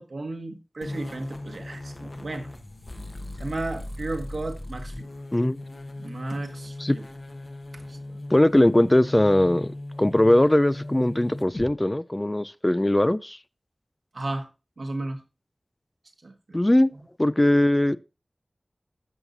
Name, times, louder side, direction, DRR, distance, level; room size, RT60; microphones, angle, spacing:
voice 1, 0.0-2.5 3.4-5.1 6.0-7.0 7.7-8.2 14.1-14.5 14.8-15.2 16.2-16.7, right 2 dB, 75° right, 1.3 m, -34 dB
sound 1, 0.8-11.7, left 1 dB, 45° left, 1.3 m, -38 dB
voice 2, 8.3-9.7 10.0-13.4 16.5-16.9 17.2-18.0, left 1 dB, 25° left, 0.3 m, -20 dB
14.0 x 5.6 x 2.7 m
wide cardioid pair, 55°, 0 cm